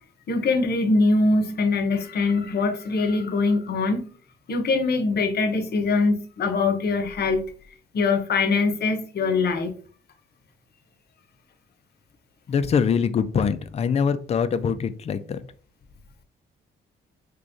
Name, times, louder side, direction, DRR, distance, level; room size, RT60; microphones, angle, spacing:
voice 1, 0.3-4.1 4.5-7.4 7.9-9.7, left 3 dB, 55° left, 0.7 m, -22 dB
voice 2, 12.5-15.4, left 6 dB, 35° left, 0.4 m, -23 dB
3.5 x 3.0 x 2.6 m
cardioid pair, 90°, 20 cm